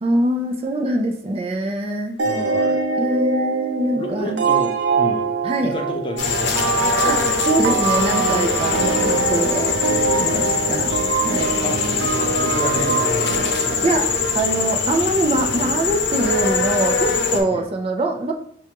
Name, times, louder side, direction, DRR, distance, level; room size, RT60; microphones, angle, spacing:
voice 1, 0.0-2.2 3.0-4.3 5.4-5.8 7.0-10.9 11.2-11.5 13.8-14.1 14.3-18.3, right 1 dB, 30° right, 3 dB, 0.4 m, -23 dB
voice 2, 2.2-2.8 3.9-5.3 5.6-6.5 10.3-10.5 11.6-11.8 12.3-13.5 17.5-17.7, left 1 dB, 30° left, 2 dB, 0.5 m, -30 dB
sound 1, 2.2-14.6, right 5 dB, 90° right, 0.5 m, -24 dB
sound 2, 6.2-17.4, left 4 dB, 75° left, 0.7 m, -22 dB
6.1 x 2.2 x 2.8 m, 0.65 s
head